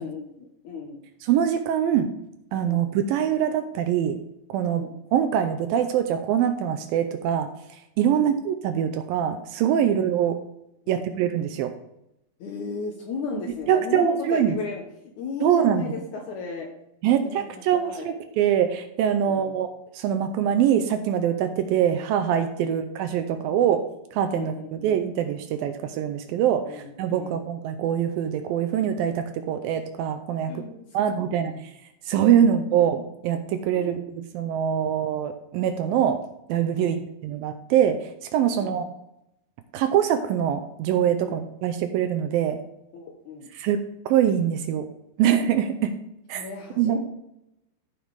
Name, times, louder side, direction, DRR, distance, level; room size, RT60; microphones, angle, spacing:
voice 1, 0.0-1.0 2.7-2.9 4.7-4.9 8.1-8.3 9.8-10.0 10.9-11.0 12.4-16.7 17.1-18.1 19.3-19.6 22.6-22.8 23.5-23.7 24.3-24.8 26.7-27.4 30.4-31.1 31.4-31.6 32.4-32.6 33.7-34.1 36.8-37.0 38.5-38.8 41.2-41.4 42.9-43.5 46.3-47.0, left 5 dB, 70° left, 2 dB, 2.0 m, -36 dB
voice 2, 1.2-2.1 2.5-4.2 4.5-7.5 8.0-10.4 10.9-11.7 13.7-14.5 15.4-15.8 17.0-19.7 19.9-23.9 24.1-30.6 30.9-31.5 32.1-36.2 36.5-38.9 39.7-42.6 43.6-43.8 44.1-44.9 45.2-46.0 46.3-46.4 46.8-47.0, right 9 dB, 80° right, 8 dB, 2.3 m, -23 dB
14.5 x 5.7 x 3.5 m, 0.81 s
omnidirectional pair, 4.5 m